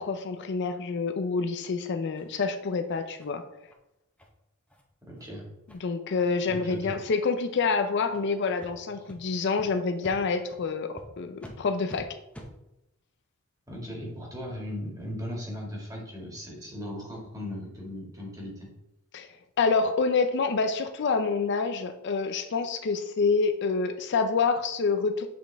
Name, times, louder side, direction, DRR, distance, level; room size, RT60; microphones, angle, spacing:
voice 1, 0.0-3.4 5.8-12.1 19.1-19.3 19.6-25.3, left 4 dB, 55° left, 8 dB, 0.5 m, -27 dB
sound 1, 2.2-2.3 2.7-2.8 3.2-3.3 3.7-3.8 4.2-4.3 4.7-4.8 5.2-5.3 5.7-5.8 6.2-6.3 6.7-7.0 7.6-7.7 8.1-8.2 8.6-8.7 9.1-9.2 9.6-9.7 10.0-10.2 10.5-10.6 11.0-11.1 11.4-11.5 11.9-12.0 12.3-12.5, equal, 5° left, 0.8 m, -47 dB
voice 2, 5.1-5.5 6.5-7.0 13.7-18.7, left 1 dB, 15° right, -2 dB, 1.9 m, -37 dB
7.6 x 4.2 x 3.4 m, 0.87 s
head